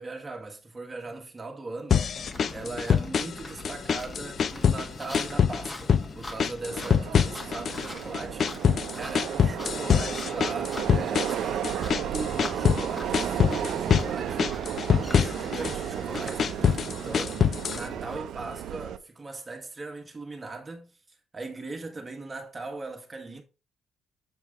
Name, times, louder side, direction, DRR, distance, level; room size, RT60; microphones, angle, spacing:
voice 1, 0.0-2.1 2.5-14.6 15.0-23.4, right 3 dB, 25° right, 1.4 m, -39 dB
sound 1, 1.9-3.4 3.6-4.9 5.1-6.1 6.4-7.9 8.1-12.9 13.1-14.1 14.4-15.8 16.1-17.8, left 7 dB, 55° left, 0.5 m, -24 dB
sound 2, 2.1-18.2, left 2 dB, 25° left, 1.4 m, -43 dB
Subway metro underground, 6.6-19.0, right 10 dB, 75° right, 0.6 m, -33 dB
7.9 x 4.6 x 3.5 m
cardioid pair, 90°, 0 cm